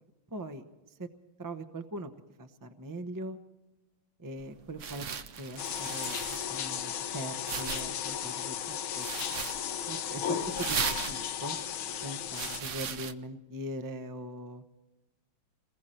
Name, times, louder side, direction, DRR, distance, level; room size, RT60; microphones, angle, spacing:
voice 1, 0.3-0.6 1.0-1.1 1.4-2.1 2.4-3.4 4.2-5.1 5.4-6.2 6.5-9.1 9.9-10.8 11.1-11.6 12.0-14.6, right 1 dB, 25° right, 7 dB, 0.4 m, -41 dB
sound 1, 4.4-13.1, right 7 dB, 75° right, 0.7 m, -38 dB
sound 2, 5.6-12.6, left 9 dB, 75° left, 1.7 m, -35 dB
27.0 x 21.5 x 4.4 m, 1.1 s
omnidirectional pair, 2.3 m